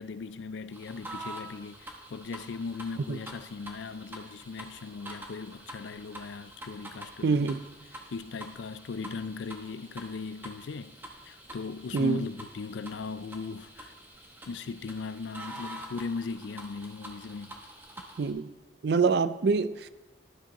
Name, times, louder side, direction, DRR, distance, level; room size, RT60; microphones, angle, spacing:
voice 1, 0.0-7.6 8.1-11.0 11.2-13.9 14.5-17.6, left 4 dB, 85° left, 0.4 m, -38 dB
sound 1, 0.7-18.3, right 1 dB, 10° right, 0.9 m, -46 dB
voice 2, 7.2-7.6 11.9-12.3 18.2-18.5 18.8-19.9, right 4 dB, 65° right, 0.4 m, -25 dB
12.5 x 6.9 x 3.0 m
head